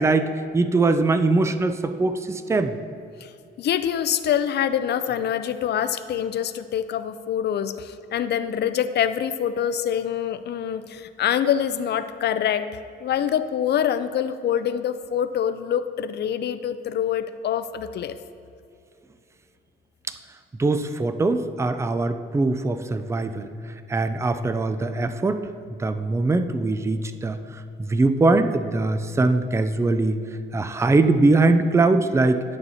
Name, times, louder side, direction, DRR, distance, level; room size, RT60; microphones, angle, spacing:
voice 1, 0.0-2.8 20.6-23.5 23.9-27.4 27.8-30.2 30.5-32.4, right 3 dB, 15° right, 10 dB, 0.4 m, -22 dB
voice 2, 3.6-12.7 13.0-18.2, left 9 dB, 60° left, 12 dB, 0.4 m, -25 dB
10.5 x 6.9 x 2.8 m, 2.5 s
cardioid pair, 90°, 20 cm